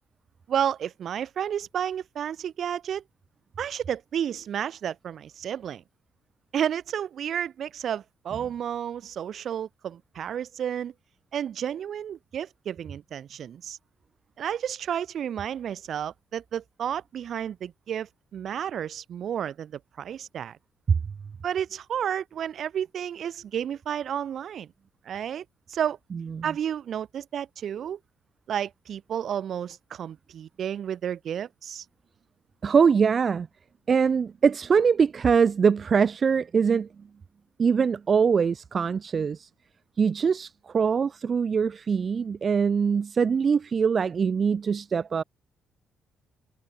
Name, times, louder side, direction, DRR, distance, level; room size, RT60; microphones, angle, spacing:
voice 1, 0.5-3.0 3.6-5.8 6.5-10.9 11.3-13.8 14.4-20.6 21.4-24.7 25.0-26.0 26.4-28.0 28.5-31.8, right 9 dB, 60° right, 1.6 m, -31 dB
voice 2, 26.1-26.4 32.6-33.5 33.9-36.9 37.6-39.5 40.0-45.2, right 6 dB, 45° right, 0.5 m, -23 dB
cardioid pair, 90°, 0 cm